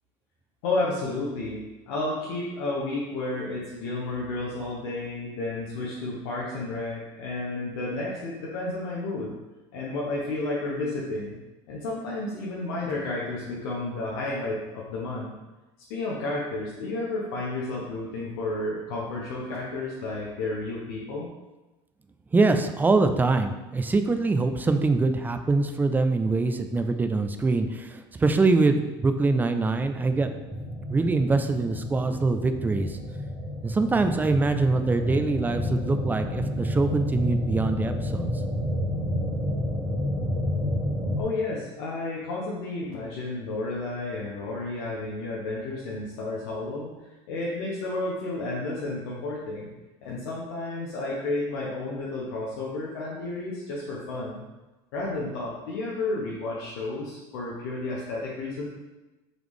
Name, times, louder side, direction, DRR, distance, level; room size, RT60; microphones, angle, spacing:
voice 1, 0.6-1.6 1.9-9.4 9.7-11.4 11.7-15.3 15.9-21.3 41.1-49.7 50.0-54.4 54.9-58.7, left 2 dB, 85° left, -5 dB, 0.8 m, -31 dB
voice 2, 22.3-30.3 30.9-33.0 33.6-38.3, right 3 dB, 15° right, 8 dB, 0.3 m, -24 dB
sound 1, 29.8-41.2, left 1 dB, 5° left, 1.4 m, -30 dB
3.9 x 3.1 x 3.5 m, 1.1 s
supercardioid pair, 105°, 13 cm